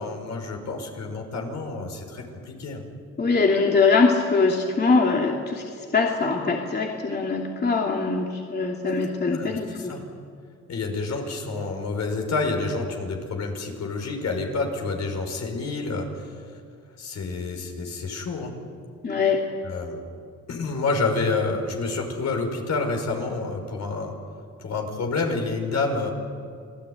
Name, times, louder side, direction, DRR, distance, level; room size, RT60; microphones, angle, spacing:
voice 1, 0.0-2.8 9.3-10.0 10.7-16.3 17.0-18.5 19.6-20.0 20.5-24.2 24.6-26.1, left 3 dB, 60° left, 3 dB, 5.6 m, -28 dB
voice 2, 3.2-5.6 5.9-9.9 19.0-19.4, left 4 dB, 35° left, -1 dB, 2.9 m, -22 dB
27.5 x 18.0 x 9.5 m, 2.3 s
cardioid pair, 90°, 30 cm